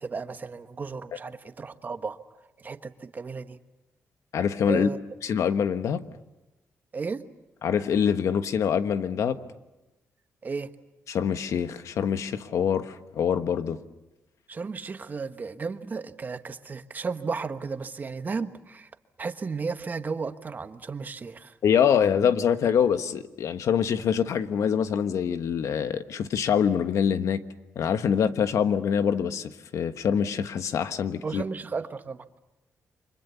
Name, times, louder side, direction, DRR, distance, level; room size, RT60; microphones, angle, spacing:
voice 1, 0.0-2.2 2.6-3.6 4.7-5.0 6.9-7.2 10.4-10.7 14.5-18.9 19.2-21.6 31.2-32.2, right 4 dB, 35° right, 1.3 m, -34 dB
voice 2, 4.3-4.9 5.2-6.0 7.6-9.4 11.1-13.8 21.6-27.4 27.7-31.4, left 7 dB, 70° left, 1.3 m, -25 dB
29.5 x 24.5 x 7.0 m
cardioid pair, 120°, 5 cm